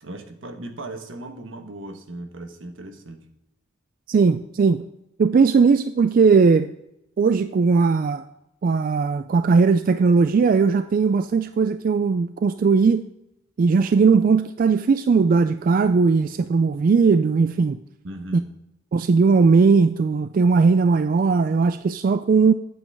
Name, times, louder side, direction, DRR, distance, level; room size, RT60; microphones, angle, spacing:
voice 1, 0.0-3.2 18.0-18.5, right 1 dB, 80° right, 6 dB, 1.2 m, -37 dB
voice 2, 4.1-4.8 5.2-6.7 7.2-8.2 8.6-13.1 13.6-17.8 18.3-18.4 18.9-22.5, right 4 dB, 45° right, 11 dB, 0.3 m, -18 dB
9.0 x 7.7 x 3.5 m, 0.85 s
head